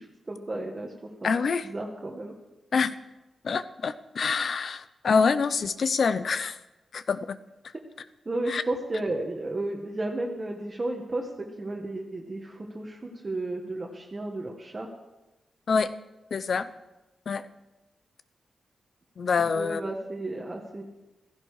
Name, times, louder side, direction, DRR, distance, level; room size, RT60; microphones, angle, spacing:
voice 1, 0.0-1.3 1.6-2.3 8.2-14.9 16.5-16.6 19.5-20.8, right 2 dB, 25° right, 1 dB, 1.4 m, -33 dB
voice 2, 1.2-1.7 2.7-2.9 3.4-6.6 6.9-7.4 8.5-8.6 15.7-15.9 16.3-16.7 17.3-17.5 19.2-19.8, left 5 dB, 50° left, 13 dB, 0.7 m, -26 dB
16.0 x 15.0 x 4.9 m, 1.0 s
wide cardioid pair, 170°, 0 cm